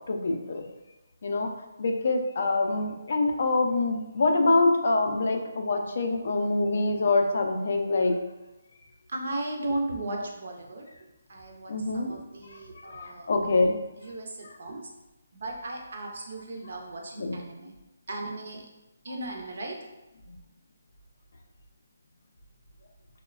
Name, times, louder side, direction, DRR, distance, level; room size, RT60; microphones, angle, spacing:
voice 1, 0.1-0.6 1.2-1.5 1.8-8.2 11.7-12.1 12.9-13.7 17.2-17.4, left 3 dB, 60° left, 3 dB, 0.3 m, -25 dB
voice 2, 9.1-10.8 11.3-13.3 14.0-14.9 15.3-17.7 18.1-18.6 19.0-19.9, right 2 dB, 65° right, 1 dB, 0.5 m, -36 dB
3.0 x 2.0 x 2.3 m, 1.0 s
hypercardioid pair, 160°, 0 cm